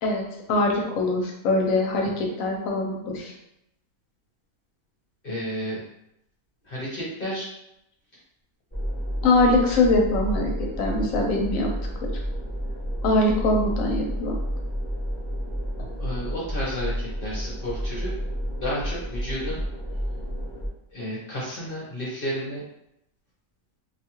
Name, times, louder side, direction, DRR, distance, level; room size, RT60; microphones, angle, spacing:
voice 1, 0.0-3.3 9.2-10.5 10.8-11.7 12.0-12.1 13.0-14.4, left 2 dB, 70° left, 0 dB, 1.0 m, -23 dB
voice 2, 5.2-5.8 6.6-7.5 16.0-18.2 18.6-19.6 20.9-22.6, equal, 50° left, -7 dB, 0.8 m, -31 dB
sound 1, 8.7-20.7, equal, 10° left, 0.7 m, -30 dB
2.6 x 2.3 x 2.8 m, 0.81 s
omnidirectional pair, 1.6 m